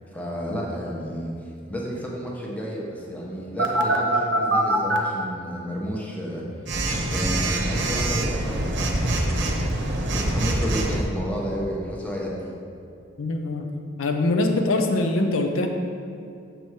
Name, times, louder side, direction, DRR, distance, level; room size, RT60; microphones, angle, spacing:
voice 1, 0.1-6.4 7.1-9.7 10.1-12.5, equal, 10° left, -3 dB, 0.9 m, -31 dB
Telephone, 3.6-5.0 6.7-11.0, right 2 dB, 60° right, 0.8 m, -24 dB
voice 2, 13.2-13.7 14.0-15.7, left 2 dB, 85° left, 4 dB, 0.6 m, -23 dB
6.6 x 4.4 x 4.7 m, 2.5 s
head